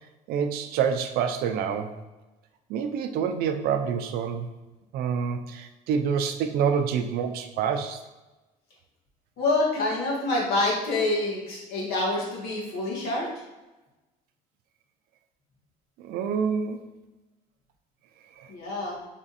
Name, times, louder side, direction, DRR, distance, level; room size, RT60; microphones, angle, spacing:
voice 1, 0.3-1.9 2.7-4.5 4.9-8.0 16.0-16.8 18.4-18.5, right 7 dB, 70° right, 7 dB, 0.4 m, -27 dB
voice 2, 9.4-13.3 18.5-19.0, left 2 dB, 75° left, -4 dB, 1.5 m, -26 dB
3.5 x 2.5 x 4.1 m, 1.1 s
cardioid pair, 110°, 16 cm